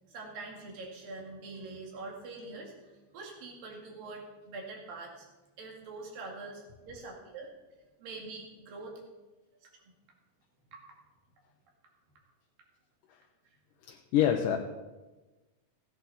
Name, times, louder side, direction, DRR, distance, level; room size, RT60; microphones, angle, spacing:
voice 1, 0.1-5.3 5.6-7.5 8.0-9.0 10.7-10.8, right 3 dB, 80° right, 0 dB, 4.0 m, -44 dB
voice 2, 13.9-14.6, left 10 dB, 75° left, 1 dB, 2.3 m, -26 dB
16.5 x 10.0 x 4.1 m, 1.2 s
omnidirectional pair, 3.9 m